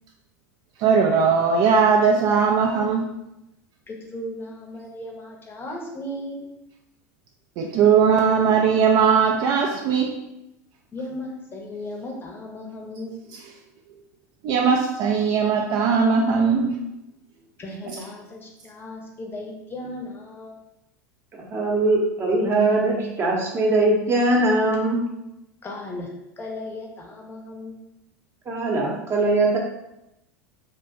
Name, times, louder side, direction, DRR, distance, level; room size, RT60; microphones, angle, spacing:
voice 1, 0.8-3.1 7.6-10.1 14.4-16.8, right 6 dB, 45° right, 2 dB, 0.3 m, -19 dB
voice 2, 3.9-6.5 10.9-13.2 17.6-20.6 25.6-27.8, left 1 dB, 25° left, 0 dB, 0.7 m, -36 dB
voice 3, 21.3-25.0 28.5-29.6, right 2 dB, 25° right, -1 dB, 0.8 m, -21 dB
2.5 x 2.1 x 3.5 m, 0.88 s
figure-of-eight pair, 85°, 9 cm